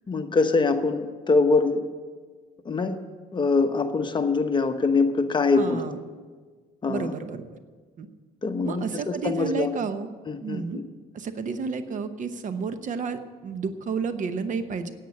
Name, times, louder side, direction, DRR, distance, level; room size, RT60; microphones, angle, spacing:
voice 1, 0.1-1.9 2.6-3.0 3.3-5.8 6.8-7.1 8.4-9.7 10.3-10.8, left 4 dB, 30° left, 7 dB, 1.0 m, -23 dB
voice 2, 5.5-6.0 6.9-7.5 8.0-8.1 8.6-10.1 10.4-10.8 11.1-14.9, right 5 dB, 50° right, 10 dB, 0.9 m, -31 dB
10.5 x 8.3 x 9.8 m, 1.5 s
cardioid pair, 110°, 17 cm